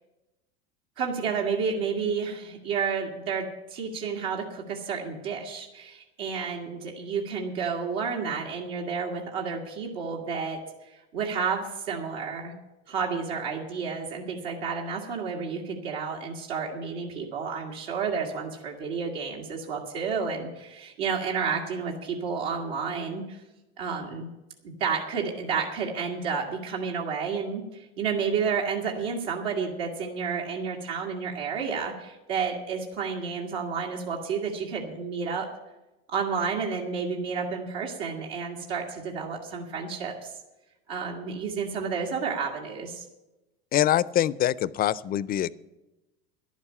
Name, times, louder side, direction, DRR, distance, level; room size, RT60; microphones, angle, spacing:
voice 1, 1.0-10.6 10.9-12.5 12.9-23.4 23.8-24.3 24.6-27.6 28.0-35.5 36.1-40.3 40.9-43.1, right 5 dB, 80° right, 0 dB, 1.9 m, -31 dB
voice 2, 43.7-45.5, left 12 dB, 30° left, 19 dB, 0.4 m, -24 dB
11.0 x 7.3 x 9.8 m, 1.0 s
supercardioid pair, 105°, 30 cm